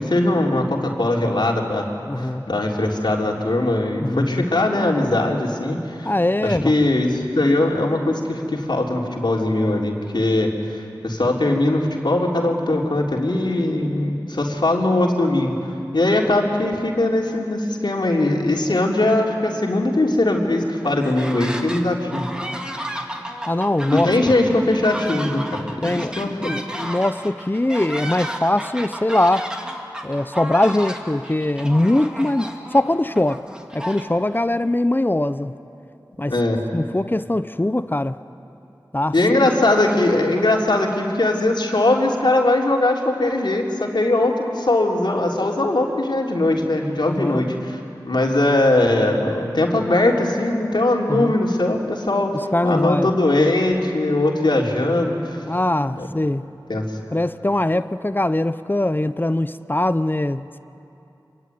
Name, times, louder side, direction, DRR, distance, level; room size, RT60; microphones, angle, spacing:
voice 1, 0.0-1.9 2.2-6.1 6.4-15.6 15.9-22.3 22.6-23.1 23.9-26.5 36.3-36.6 39.1-52.4 52.6-55.4 56.0-56.1 56.7-57.0, left 2 dB, 75° left, 0 dB, 3.6 m, -20 dB
voice 2, 2.1-2.4 4.0-4.5 6.0-6.7 18.7-18.8 23.5-24.1 25.8-29.5 30.0-33.4 33.7-35.5 36.2-36.3 36.7-38.2 38.9-39.1 47.1-47.4 51.1-51.3 52.5-53.1 55.5-56.5 57.1-60.6, left 1 dB, 25° left, 13 dB, 0.7 m, -21 dB
sound 1, 20.8-21.8 22.1-34.4, equal, 10° right, 2.6 m, -32 dB
26.0 x 24.0 x 9.5 m, 2.7 s
wide cardioid pair, 50°, 8 cm